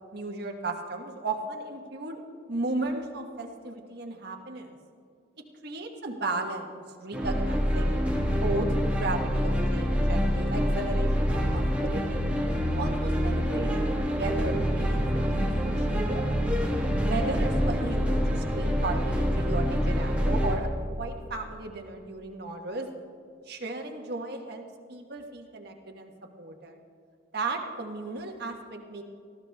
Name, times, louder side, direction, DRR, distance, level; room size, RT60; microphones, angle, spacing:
voice 1, 0.1-2.2 2.5-4.8 5.6-12.2 12.8-16.4 17.0-22.9 23.5-26.1 26.4-26.8 27.3-29.0, right 2 dB, 60° right, 3 dB, 1.4 m, -35 dB
sound 1, 7.1-20.5, equal, 5° right, 1.5 m, -26 dB
19.5 x 14.0 x 3.5 m, 2.3 s
head